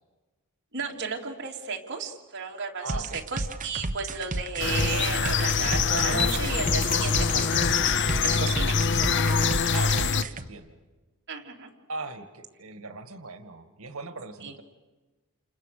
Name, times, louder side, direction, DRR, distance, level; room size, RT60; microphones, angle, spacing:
voice 1, 0.7-8.8 11.3-11.7 14.4-14.5, right 5 dB, 55° right, -1 dB, 3.3 m, -34 dB
voice 2, 2.8-3.2 7.3-7.5 9.7-10.8 11.9-14.6, right 3 dB, 85° right, 8 dB, 1.9 m, -39 dB
sound 1, 2.9-10.5, right 2 dB, 35° right, 1.0 m, -32 dB
sound 2, 4.6-10.2, left 5 dB, 60° left, 0.8 m, -24 dB
30.0 x 28.5 x 6.7 m, 1.2 s
head